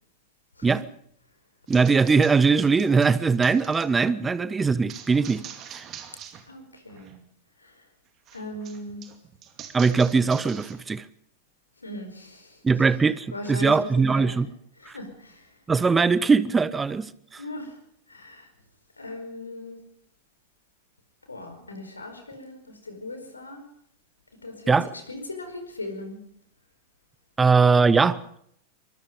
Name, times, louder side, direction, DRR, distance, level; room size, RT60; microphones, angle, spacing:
voice 1, 1.7-5.4 5.7-5.9 9.7-11.0 12.6-14.5 15.7-17.1 17.3-17.4 24.7-24.9 27.4-28.4, right 4 dB, 15° right, 1.0 m, -21 dB
sound 1, 1.7-3.9 4.9-6.5 6.7-7.2 8.3-10.8, right 9 dB, 35° right, 2.4 m, -44 dB
voice 2, 6.5-7.2 7.6-7.8 8.3-9.1 11.8-12.6 13.3-14.3 14.8-15.5 17.4-17.8 18.1-18.5 19.0-19.8 21.3-23.7 24.4-24.8 25.1-26.2, left 2 dB, 80° left, 4.7 m, -38 dB
24.5 x 21.5 x 5.3 m
figure-of-eight pair, 90°, 0 cm